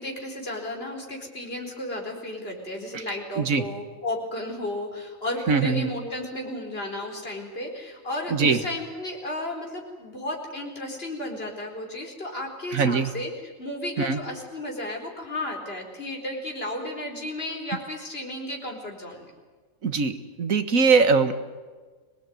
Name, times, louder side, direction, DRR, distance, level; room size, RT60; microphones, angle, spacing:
voice 1, 0.0-13.3 13.6-19.3, left 1 dB, 45° left, 1 dB, 4.8 m, -33 dB
voice 2, 5.5-5.9 8.3-8.6 12.7-13.1 14.0-14.2 19.8-21.3, right 4 dB, 85° right, 10 dB, 2.0 m, -21 dB
25.5 x 19.5 x 9.4 m, 1.4 s
omnidirectional pair, 1.4 m